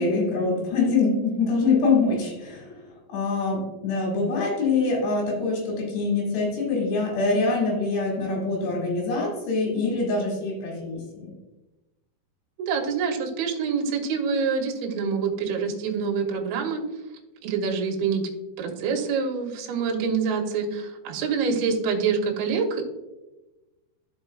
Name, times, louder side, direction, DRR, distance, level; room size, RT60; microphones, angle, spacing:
voice 1, 0.0-2.8 3.1-11.3, left 3 dB, 70° left, -2 dB, 4.2 m, -24 dB
voice 2, 12.6-16.8 17.4-18.2 18.6-22.8, right 5 dB, 70° right, 1 dB, 2.6 m, -26 dB
13.0 x 5.2 x 2.4 m, 1.1 s
omnidirectional pair, 5.1 m